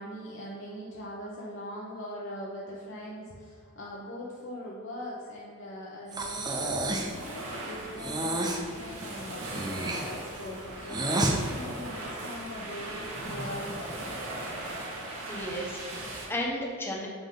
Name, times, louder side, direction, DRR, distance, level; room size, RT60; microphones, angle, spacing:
voice 1, 0.0-14.2, left 1 dB, 60° left, -5 dB, 1.0 m, -41 dB
Breathing, 6.1-7.2 8.0-8.6 9.4-11.4, right 1 dB, 20° right, 0.6 m, -30 dB
sound 1, 6.1-16.3, right 1 dB, 80° right, 1.8 m, -39 dB
voice 2, 15.3-17.1, left 1 dB, 10° left, -2 dB, 1.0 m, -34 dB
7.0 x 5.5 x 3.8 m, 2.2 s
head